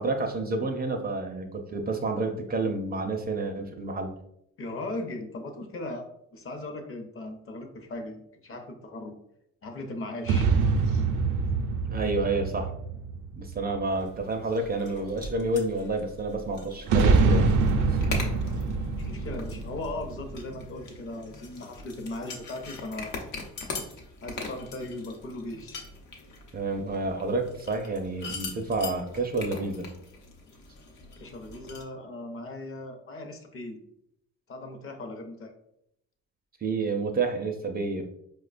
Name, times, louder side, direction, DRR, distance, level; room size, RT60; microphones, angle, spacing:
voice 1, 0.0-4.1 11.9-12.7 13.4-17.5 17.8-18.0 26.5-29.9 36.6-38.0, right 3 dB, 30° right, 4 dB, 0.4 m, -29 dB
voice 2, 4.6-9.2 9.6-10.5 10.8-11.1 19.1-23.4 24.2-25.8 31.2-33.8 34.5-35.5, left 2 dB, 45° left, 5 dB, 0.7 m, -38 dB
sound 1, 10.3-13.9 16.9-20.7, right 4 dB, 85° right, 0.5 m, -25 dB
sound 2, 13.9-31.8, left 3 dB, 80° left, 0.8 m, -42 dB
4.6 x 2.2 x 2.4 m, 0.78 s
cardioid pair, 90°, 30 cm